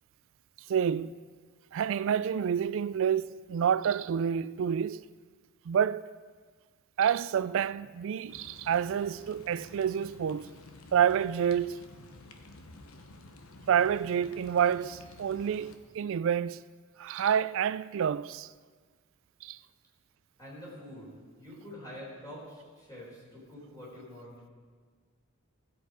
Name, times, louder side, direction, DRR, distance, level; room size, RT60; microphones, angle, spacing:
voice 1, 0.7-1.1 1.7-5.0 5.7-6.0 7.0-10.5 10.9-11.8 13.7-16.6 17.0-18.5 19.4-19.6, right 8 dB, 60° right, 0.3 m, -28 dB
sound 1, 8.3-15.8, left 2 dB, 80° left, 1.0 m, -51 dB
voice 2, 20.4-24.5, left 1 dB, 15° left, 4.4 m, -46 dB
16.0 x 7.8 x 5.0 m
head